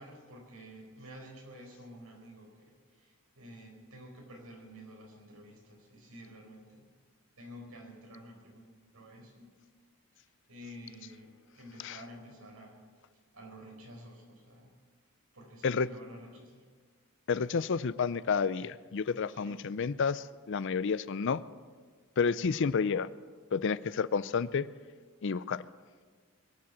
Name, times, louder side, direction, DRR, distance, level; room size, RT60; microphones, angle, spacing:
voice 1, 0.0-6.8 7.4-9.6 10.1-13.1 13.3-14.7 15.3-16.7 19.3-19.8 23.3-23.4, equal, 75° right, 0 dB, 4.6 m, -51 dB
voice 2, 17.3-21.4 22.2-23.1 23.5-24.7 25.2-25.6, left 5 dB, 55° left, 17 dB, 0.5 m, -30 dB
22.0 x 7.7 x 8.4 m, 1.5 s
head